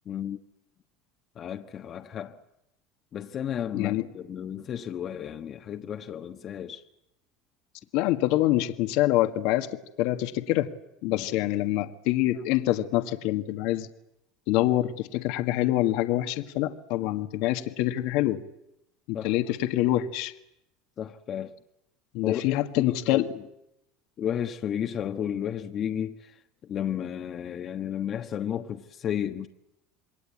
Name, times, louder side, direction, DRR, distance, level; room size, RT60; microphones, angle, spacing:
voice 1, 0.0-0.4 1.4-2.4 3.1-6.8 11.1-11.3 19.1-19.3 21.0-21.5 22.2-23.2 24.2-26.4 26.7-29.5, left 9 dB, 45° left, 1.3 m, -33 dB
voice 2, 3.7-4.1 7.9-9.7 10.0-10.7 11.0-13.9 14.5-18.4 19.1-20.3 22.1-23.3, left 15 dB, 70° left, 1.6 m, -25 dB
27.5 x 22.0 x 8.6 m
supercardioid pair, 100°, 0 cm